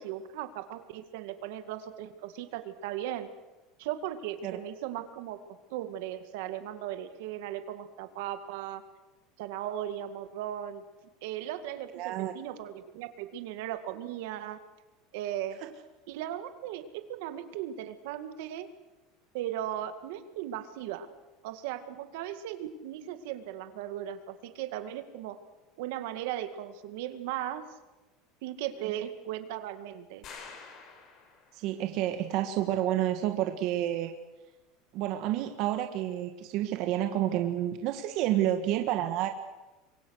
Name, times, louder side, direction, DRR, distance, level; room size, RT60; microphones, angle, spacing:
voice 1, 0.0-3.3 3.8-5.4 5.7-8.8 9.4-10.8 11.2-14.6 15.1-15.6 16.1-18.7 19.3-21.1 21.4-25.4 25.8-27.6 28.4-30.2, right 12 dB, 75° right, 9 dB, 2.1 m, -37 dB
voice 2, 11.9-12.3 15.6-15.7 31.5-34.1 34.9-39.3, right 12 dB, 55° right, 6 dB, 1.6 m, -29 dB
sound 1, 30.2-31.7, left 5 dB, 40° left, 5.4 m, -48 dB
27.5 x 23.0 x 6.6 m, 1.1 s
supercardioid pair, 140°, 0 cm